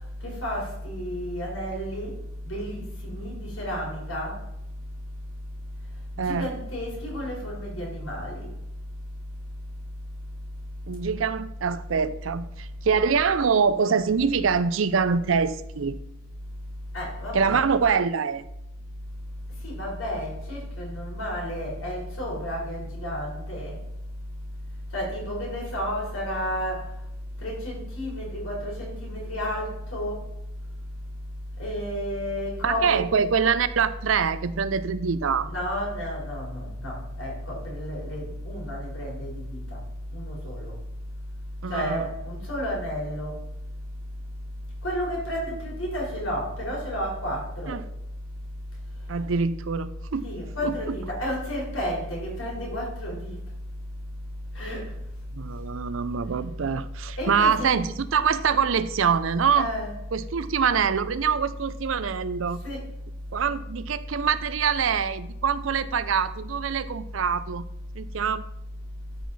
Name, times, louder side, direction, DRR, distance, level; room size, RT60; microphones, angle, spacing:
voice 1, 0.2-2.1 2.5-4.3 6.2-8.5 16.9-17.6 19.6-23.7 24.9-26.8 27.4-30.2 31.6-33.0 35.4-39.6 40.1-40.7 41.7-43.4 44.8-47.7 50.2-53.3 54.6-54.8 57.2-57.7 59.6-59.9 62.6-62.8, equal, 85° left, -2 dB, 3.9 m, -31 dB
voice 2, 6.2-6.5 10.9-16.0 17.3-18.5 32.6-35.5 41.6-42.1 47.7-47.8 49.1-50.3 50.6-51.0 55.3-59.7 60.1-62.6 63.3-67.6 68.0-68.4, right 6 dB, 75° right, 14 dB, 0.5 m, -24 dB
13.0 x 4.7 x 4.1 m, 0.82 s
head